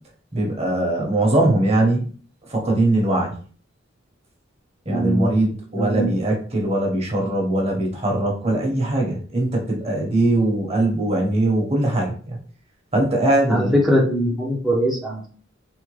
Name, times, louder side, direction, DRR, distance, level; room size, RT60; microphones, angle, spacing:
voice 1, 0.3-2.1 2.5-3.4 4.9-12.4 12.9-13.7, right 1 dB, 35° right, 0 dB, 0.9 m, -21 dB
voice 2, 4.9-5.3 5.8-6.1 13.5-15.3, equal, 5° right, -5 dB, 0.5 m, -21 dB
3.5 x 2.2 x 3.1 m, 0.42 s
head